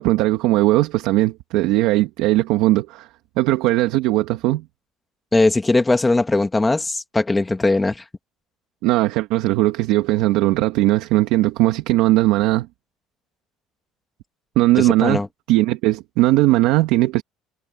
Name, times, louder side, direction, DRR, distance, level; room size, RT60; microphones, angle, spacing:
voice 1, 0.0-3.1 3.4-4.6 8.8-12.7 14.5-15.2 15.5-17.2, right 17 dB, 75° right, 1.7 m, -18 dB
voice 2, 5.3-7.9 14.8-15.3, left 2 dB, 10° left, 1.5 m, -19 dB
cardioid pair, 160°, 0 cm